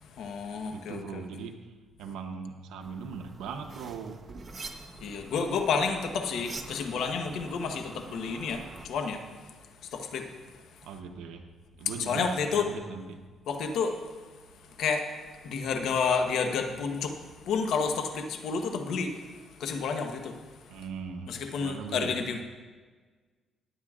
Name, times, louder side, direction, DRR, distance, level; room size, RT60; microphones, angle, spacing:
voice 1, 0.0-1.2 5.0-9.5 9.8-10.6 12.0-12.7 13.5-14.0 14.8-20.5 21.3-22.4, left 5 dB, 75° left, 5 dB, 1.1 m, -31 dB
voice 2, 0.7-1.7 2.0-4.2 10.8-11.5 11.8-13.2 20.7-22.2, right 5 dB, 90° right, 5 dB, 0.8 m, -40 dB
sound 1, 2.8-8.9, right 3 dB, 35° right, 1.0 m, -46 dB
20.0 x 9.4 x 2.5 m, 1.4 s
cardioid pair, 90°, 0 cm